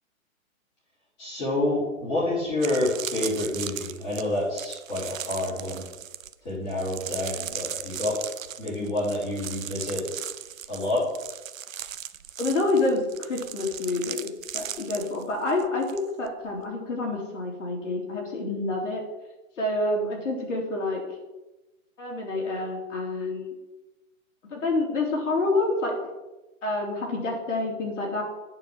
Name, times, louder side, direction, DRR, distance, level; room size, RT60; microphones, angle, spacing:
voice 1, 1.2-5.8 6.4-8.2 8.6-10.0 10.7-11.1, left 1 dB, 20° left, -10 dB, 3.7 m, -28 dB
sound 1, 2.0-2.1 2.5-16.0 16.3-16.6, right 9 dB, 70° right, 0.7 m, -37 dB
voice 2, 12.4-19.0 19.6-21.0 22.0-23.5 24.5-25.9 26.6-28.2, left 2 dB, 60° left, -1 dB, 3.3 m, -28 dB
9.1 x 4.6 x 7.2 m, 1.1 s
hypercardioid pair, 180°, 42 cm